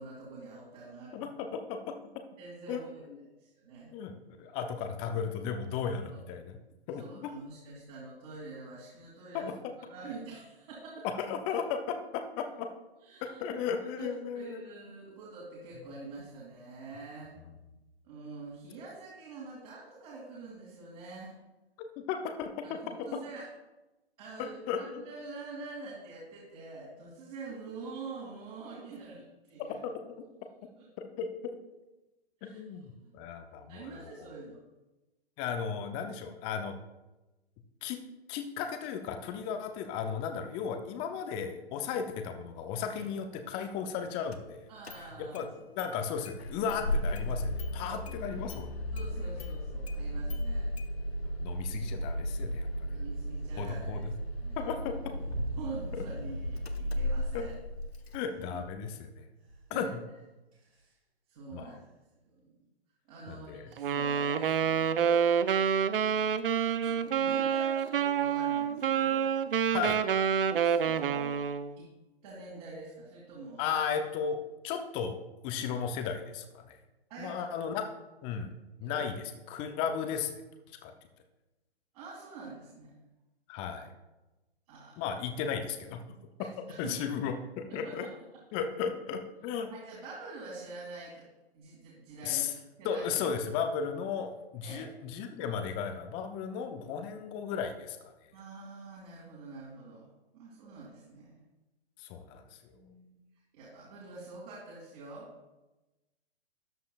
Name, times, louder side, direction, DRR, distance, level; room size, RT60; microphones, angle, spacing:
voice 1, 0.0-1.3 2.4-3.0 3.4-3.9 6.1-6.2 7.0-9.5 9.8-11.1 13.0-13.6 14.0-17.4 18.0-21.3 22.6-23.4 24.2-24.6 25.0-29.8 30.8-30.9 32.4-32.6 33.0-33.1 33.7-34.5 44.7-45.5 47.8-48.1 48.9-50.7 52.9-54.0 54.4-54.7 55.6-57.5 58.5-58.6 59.7-59.9 61.3-61.7 62.3-62.5 63.1-65.2 66.6-69.3 70.4-71.4 71.8-71.9 72.2-73.6 77.1-77.8 78.8-79.0 79.6-79.8 81.9-82.9 84.7-85.0 86.4-87.1 87.7-88.0 89.7-91.3 91.5-93.3 94.6-94.9 98.3-100.1 100.3-101.4 102.8-103.1 103.5-105.3, right 3 dB, 40° right, -5 dB, 2.6 m, -46 dB
voice 2, 1.1-1.9 2.7-2.8 3.9-4.1 4.4-6.6 6.9-7.3 9.3-9.5 11.0-12.7 13.2-14.6 17.4-17.5 22.0-23.1 24.4-25.0 29.8-29.9 31.0-31.3 32.4-34.3 35.4-36.7 37.8-38.0 38.3-44.7 45.0-48.7 51.4-53.0 53.6-54.1 54.6-55.1 55.9-56.0 57.3-57.4 58.1-59.2 59.7-60.0 61.5-61.8 63.3-63.7 69.7-70.0 73.6-76.8 77.2-77.8 78.2-80.3 80.8-80.9 83.5-83.9 85.0-86.0 86.8-88.1 88.5-89.7 92.2-92.5 92.8-98.1 102.0-102.4, left 7 dB, 15° left, 6 dB, 0.6 m, -35 dB
Engine starting, 44.3-44.4 44.8-45.5 45.8-45.9 46.3-58.2, equal, 70° left, 1.1 m, -35 dB
sound 1, 55.2-55.7 56.1-56.7 57.2-57.9 58.4-58.8 59.5-59.8 60.5-60.9 61.8-61.9, right 2 dB, 85° right, 3.0 m, -41 dB
Wind instrument woodwind instrument, 63.8-71.8, right 7 dB, 55° right, 0.5 m, -28 dB
13.5 x 9.3 x 2.4 m, 1.0 s
figure-of-eight pair, 125°, 32 cm